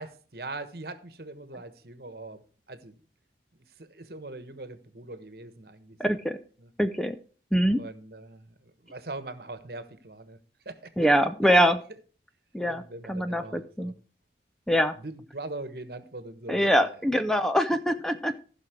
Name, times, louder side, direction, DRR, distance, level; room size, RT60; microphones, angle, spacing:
voice 1, 0.0-2.4 2.7-3.0 3.5-6.2 6.6-6.7 7.7-10.4 10.6-10.9 11.4-11.7 12.6-13.9 15.0-17.0, right 2 dB, 60° right, 11 dB, 1.3 m, -41 dB
voice 2, 6.0-6.4 6.8-7.2 7.5-7.8 11.0-11.8 12.5-12.8 13.1-13.9 14.7-15.0 16.5-18.3, equal, 5° left, 9 dB, 0.5 m, -23 dB
15.5 x 6.0 x 4.5 m, 0.40 s
head